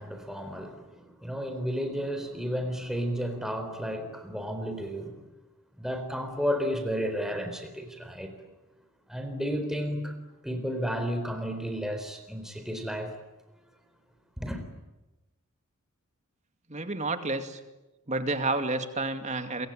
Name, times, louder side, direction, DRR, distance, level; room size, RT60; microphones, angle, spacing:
voice 1, 0.0-5.2 5.8-8.3 9.1-10.1 10.4-13.2 14.4-14.6, equal, ahead, 4.0 m, -32 dB
voice 2, 16.7-17.6 18.1-19.7, right 2 dB, 30° right, 2.5 m, -30 dB
27.5 x 24.5 x 8.9 m
head